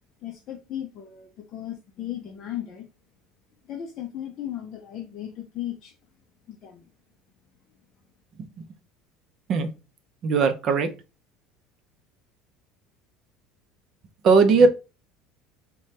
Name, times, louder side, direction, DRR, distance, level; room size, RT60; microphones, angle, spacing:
voice 1, 0.2-2.9 3.7-5.9 6.5-6.8, left 11 dB, 35° left, 0.5 m, -36 dB
voice 2, 10.2-10.9 14.2-14.7, right 4 dB, 35° right, 0.6 m, -18 dB
4.8 x 2.2 x 2.8 m
cardioid pair, 170°, 0 cm